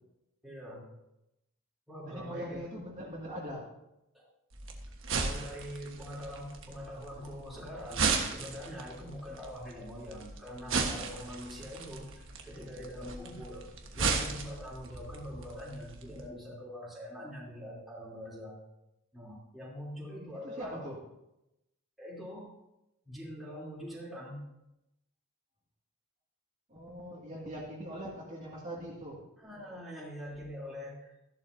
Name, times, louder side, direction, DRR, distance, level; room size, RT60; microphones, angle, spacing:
voice 1, 0.4-0.9 1.9-2.6 4.1-4.2 5.2-18.6 19.1-20.8 22.0-22.5 23.0-24.4 29.4-31.2, equal, ahead, -7 dB, 3.3 m, -44 dB
voice 2, 2.0-3.7 20.4-21.0 26.7-29.2, equal, 35° right, -5 dB, 2.3 m, -41 dB
sound 1, 4.5-16.3, right 4 dB, 60° right, 1.4 m, -36 dB
14.5 x 11.5 x 2.7 m, 0.90 s
head